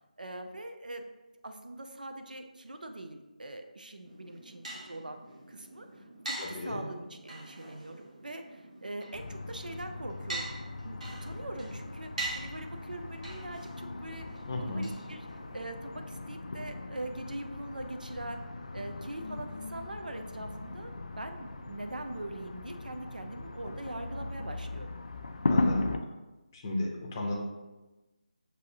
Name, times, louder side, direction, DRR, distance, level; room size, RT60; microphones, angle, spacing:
voice 1, 0.2-1.1 1.4-5.2 5.5-10.5 10.8-14.3 14.6-15.3 15.5-18.4 18.7-24.9, right 1 dB, 70° right, 6 dB, 0.5 m, -42 dB
sound 1, 4.0-15.7, right 2 dB, 55° right, 1.3 m, -44 dB
voice 2, 6.4-6.8 14.5-14.9 25.5-25.9 26.5-27.4, left 2 dB, 25° left, -1 dB, 0.6 m, -34 dB
sound 2, 9.1-26.0, left 2 dB, 55° left, 0.3 m, -38 dB
6.2 x 2.7 x 2.7 m, 1.1 s
figure-of-eight pair, 155°, 5 cm